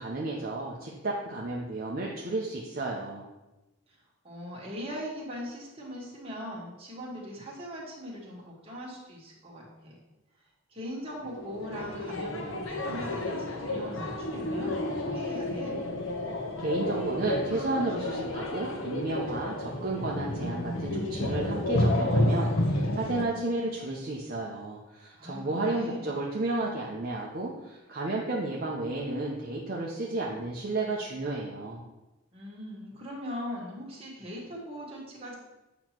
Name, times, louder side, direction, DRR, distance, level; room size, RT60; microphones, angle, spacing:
voice 1, 0.0-3.3 16.6-31.8, right 2 dB, 45° right, -3 dB, 0.8 m, -32 dB
voice 2, 4.2-10.0 10.7-15.7 25.2-26.1 32.3-35.4, equal, 30° right, -5 dB, 1.9 m, -40 dB
sound 1, 11.2-23.2, left 1 dB, 75° left, 0.9 m, -30 dB
8.6 x 3.0 x 5.9 m, 1.0 s
head